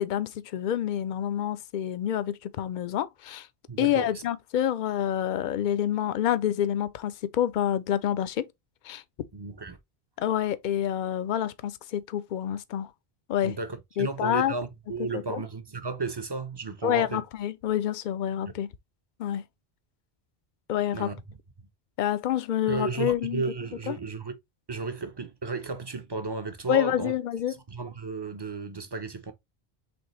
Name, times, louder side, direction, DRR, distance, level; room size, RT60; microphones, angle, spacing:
voice 1, 0.0-3.5 3.8-8.5 8.8-9.0 10.2-12.9 13.3-13.6 14.0-14.5 15.1-15.4 16.8-18.7 19.2-19.4 20.7-21.1 22.0-23.4 23.9-24.0 26.7-27.6, left 10 dB, 60° left, 0.6 m, -27 dB
voice 2, 3.7-4.2 9.3-9.8 13.4-17.2 20.9-21.2 22.7-24.3 24.7-27.1 27.5-29.3, right 4 dB, 30° right, 0.5 m, -33 dB
5.2 x 3.4 x 3.0 m
omnidirectional pair, 1.0 m